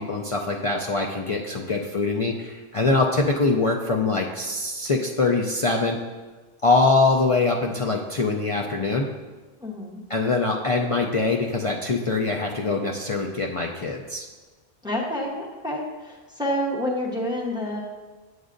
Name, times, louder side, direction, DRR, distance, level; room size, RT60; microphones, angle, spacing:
voice 1, 0.0-6.0 6.6-9.1 10.1-14.3, left 3 dB, 45° left, 0 dB, 0.4 m, -23 dB
voice 2, 9.6-10.0 14.8-17.8, left 1 dB, 5° right, -2 dB, 0.9 m, -28 dB
7.9 x 7.9 x 2.5 m, 1.3 s
omnidirectional pair, 1.0 m